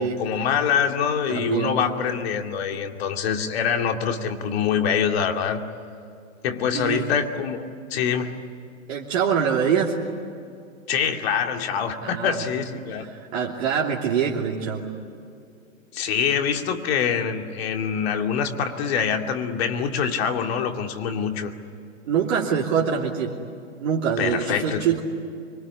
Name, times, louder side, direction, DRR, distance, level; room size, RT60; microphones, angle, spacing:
voice 1, 0.0-5.6 6.4-8.3 10.9-13.1 15.9-21.5 24.2-24.9, left 7 dB, 50° left, 5 dB, 2.6 m, -25 dB
voice 2, 1.3-1.8 6.7-7.0 8.9-9.9 12.0-12.4 13.0-14.8 22.0-23.3 23.8-25.0, right 7 dB, 55° right, -2 dB, 3.0 m, -24 dB
25.0 x 24.0 x 9.8 m, 2.4 s
hypercardioid pair, 125°, 40 cm